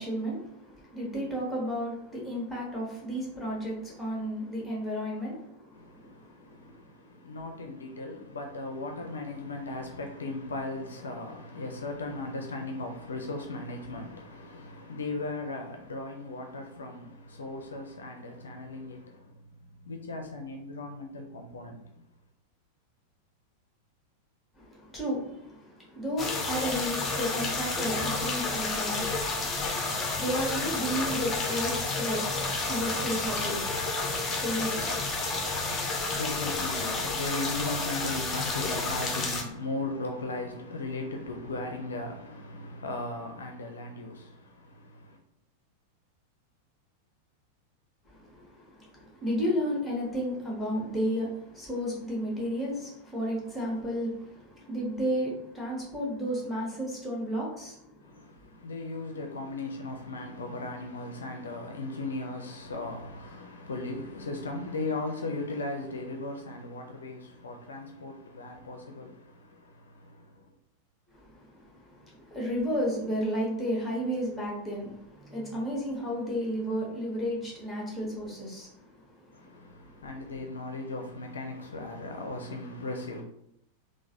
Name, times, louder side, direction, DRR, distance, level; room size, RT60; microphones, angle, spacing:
voice 1, 0.0-6.8 24.6-34.9 48.0-58.5 71.1-80.1, equal, 5° left, 1.4 m, -33 dB
voice 2, 5.7-21.9 35.3-45.2 58.0-70.5 79.3-83.2, left 2 dB, 70° left, 0.5 m, -37 dB
sound 1, 26.2-39.4, left 3 dB, 20° left, 0.7 m, -30 dB
3.8 x 2.5 x 2.8 m
figure-of-eight pair, 90°, 0 cm